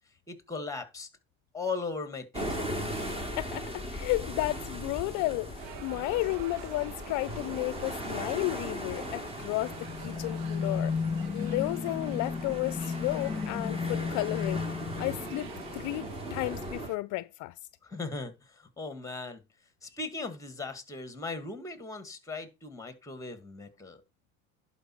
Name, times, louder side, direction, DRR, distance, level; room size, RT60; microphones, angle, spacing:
voice 1, 0.3-1.1 1.5-3.0 17.8-19.4 19.8-24.0, left 3 dB, 10° left, 1.9 m, -38 dB
sound 1, 2.3-16.9, equal, 15° right, 2.3 m, -39 dB
voice 2, 3.4-17.6, left 20 dB, 60° left, 0.5 m, -33 dB
sound 2, 5.6-17.0, right 9 dB, 70° right, 1.3 m, -47 dB
sound 3, 9.4-15.9, left 5 dB, 25° left, 0.9 m, -34 dB
11.5 x 4.1 x 4.5 m
supercardioid pair, 110°, 35 cm